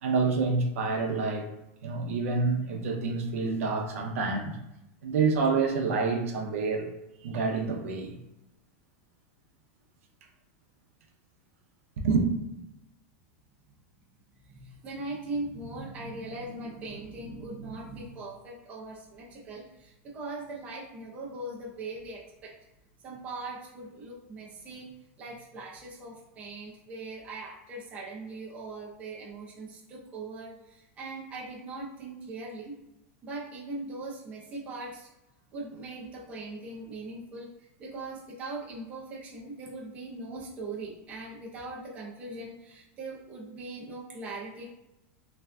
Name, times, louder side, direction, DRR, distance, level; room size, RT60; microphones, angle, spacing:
voice 1, 0.0-1.5 1.8-4.6 5.0-6.9 7.2-8.2 12.0-12.2, right 4 dB, 90° right, 0.5 m, -27 dB
voice 2, 14.5-22.5 23.0-32.7 33.2-35.1 35.5-44.6, right 2 dB, 20° right, 0.6 m, -40 dB
3.3 x 2.5 x 2.2 m
supercardioid pair, 170°, 7 cm